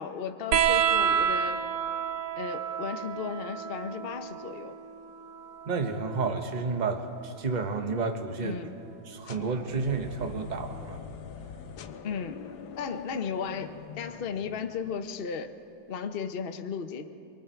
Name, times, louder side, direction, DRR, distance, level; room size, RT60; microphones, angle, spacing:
voice 1, 0.0-1.7 2.4-4.8 8.4-8.7 12.0-15.5 15.9-17.1, left 6 dB, 55° left, 7 dB, 0.6 m, -35 dB
sound 1, 0.5-7.6 9.0-9.8 11.1-11.2, right 8 dB, 90° right, 1.8 m, -30 dB
voice 2, 5.7-8.6 9.1-11.0, right 4 dB, 30° right, 6 dB, 0.9 m, -31 dB
sound 2, 9.2-15.2, left 7 dB, 80° left, 1.6 m, -44 dB
25.0 x 23.5 x 4.5 m, 2.7 s
omnidirectional pair, 2.2 m